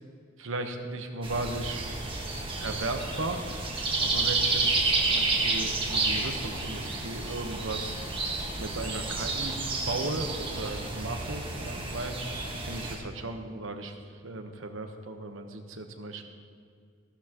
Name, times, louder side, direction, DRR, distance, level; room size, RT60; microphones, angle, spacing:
voice 1, 0.4-1.8 2.6-3.4 4.0-8.0 8.6-9.6 9.8-12.2 12.5-14.0 14.2-16.3, right 2 dB, 70° right, 5 dB, 1.1 m, -36 dB
sound 1, 1.2-13.0, right 3 dB, 25° right, 1.6 m, -30 dB
15.0 x 13.0 x 3.0 m, 2.2 s
head